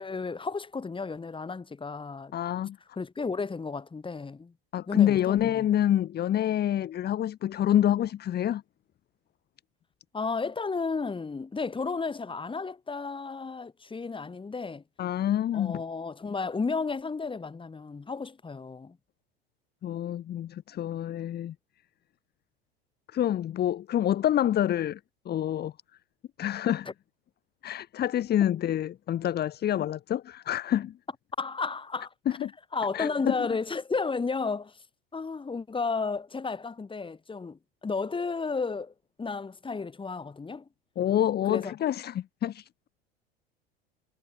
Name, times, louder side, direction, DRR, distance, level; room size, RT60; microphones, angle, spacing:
voice 1, 0.0-2.3 3.0-4.5 4.9-5.7 10.1-14.8 15.5-19.0 31.4-32.1 32.7-34.8 35.1-40.6 41.4-41.7, left 4 dB, 15° left, 6.6 m, -33 dB
voice 2, 2.3-2.8 4.7-8.6 15.0-15.8 19.8-21.6 23.1-25.0 25.3-25.7 26.4-26.9 27.6-30.9 32.3-32.5 32.9-33.5 41.0-42.7, left 11 dB, 35° left, 1.7 m, -27 dB
figure-of-eight pair, 80°, 30 cm